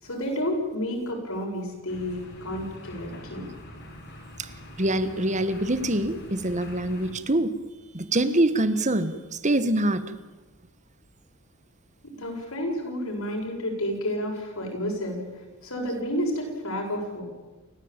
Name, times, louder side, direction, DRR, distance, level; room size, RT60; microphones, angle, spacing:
voice 1, 0.0-3.5 12.0-15.2 15.6-17.2, equal, 70° left, 0 dB, 7.6 m, -30 dB
sound 1, 1.9-7.1, left 1 dB, 55° left, 5.3 m, -44 dB
voice 2, 4.8-7.5 7.9-10.0, right 1 dB, 35° right, 12 dB, 1.4 m, -24 dB
29.0 x 16.0 x 9.0 m, 1.2 s
head